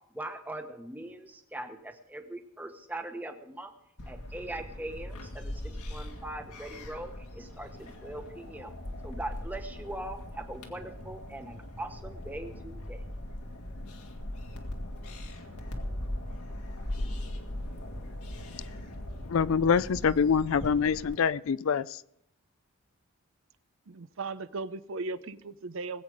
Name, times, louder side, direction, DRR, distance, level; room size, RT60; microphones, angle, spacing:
voice 1, 0.1-3.7 4.1-8.7 9.0-13.1, right 1 dB, 10° right, 1.0 m, -41 dB
sound 1, 4.0-21.1, left 1 dB, 90° left, 2.0 m, -40 dB
voice 2, 19.3-22.0, left 6 dB, 70° left, 0.4 m, -25 dB
voice 3, 23.9-26.0, right 3 dB, 65° right, 0.5 m, -37 dB
20.0 x 8.3 x 4.9 m
head